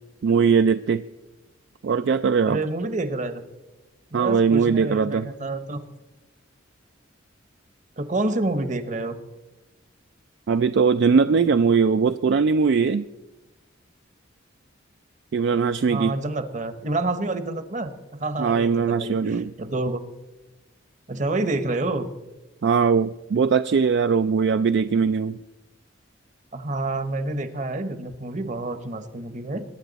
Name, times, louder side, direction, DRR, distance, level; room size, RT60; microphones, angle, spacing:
voice 1, 0.2-1.0 1.8-2.6 4.1-5.3 10.5-13.0 15.3-16.2 18.4-19.5 22.6-25.4, right 5 dB, 55° right, 11 dB, 0.3 m, -20 dB
voice 2, 2.4-3.4 4.1-5.8 8.0-9.2 15.9-20.0 21.1-22.1 26.5-29.6, right 2 dB, 40° right, 11 dB, 1.0 m, -28 dB
22.0 x 10.0 x 4.0 m, 1.1 s
head